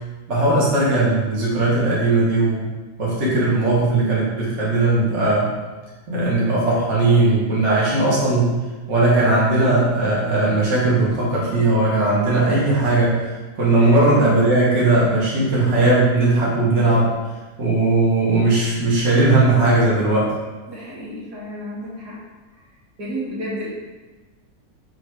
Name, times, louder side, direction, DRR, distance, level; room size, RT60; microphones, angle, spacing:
voice 1, 0.3-2.7 3.0-5.5 6.1-8.5 8.9-13.2 13.6-17.1 17.6-20.3, right 2 dB, 45° right, -7 dB, 1.9 m, -18 dB
voice 2, 20.7-22.2 23.0-23.7, equal, 90° right, -8 dB, 2.5 m, -31 dB
6.2 x 3.8 x 4.8 m, 1.2 s
omnidirectional pair, 1.7 m